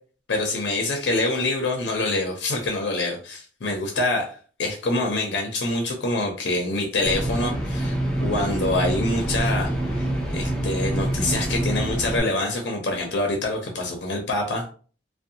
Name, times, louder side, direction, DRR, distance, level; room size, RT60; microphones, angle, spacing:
voice 1, 0.3-8.0 8.2-14.7, left 2 dB, 70° left, 1 dB, 0.5 m, -26 dB
sound 1, 7.0-12.2, right 1 dB, 5° left, 0.5 m, -26 dB
2.6 x 2.1 x 2.7 m, 0.40 s
head